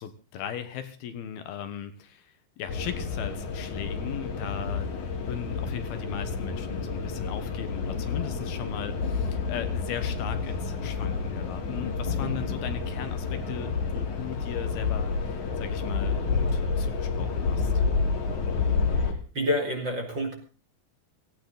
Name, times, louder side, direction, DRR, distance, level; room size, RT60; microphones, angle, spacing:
voice 1, 0.0-17.7, left 9 dB, 75° left, 9 dB, 3.1 m, -38 dB
sound 1, 2.7-19.1, left 4 dB, 50° left, 3.4 m, -29 dB
voice 2, 19.3-20.3, left 1 dB, 30° right, 2 dB, 2.8 m, -28 dB
17.0 x 16.0 x 3.9 m, 0.36 s
omnidirectional pair, 4.6 m